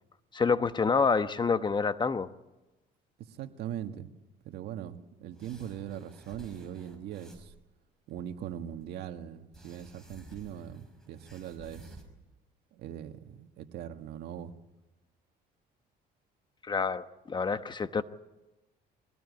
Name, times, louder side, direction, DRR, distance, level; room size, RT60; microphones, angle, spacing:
voice 1, 0.3-2.3 16.6-18.0, left 5 dB, 25° left, 12 dB, 1.0 m, -27 dB
voice 2, 3.3-4.1 4.4-7.5 8.1-12.0 12.7-14.6, right 10 dB, 75° right, 7 dB, 1.8 m, -41 dB
sound 1, 5.3-7.6 8.1-8.9 9.5-12.0, right 1 dB, 5° left, 5.6 m, -53 dB
23.0 x 18.5 x 9.6 m, 1.0 s
cardioid pair, 110°, 17 cm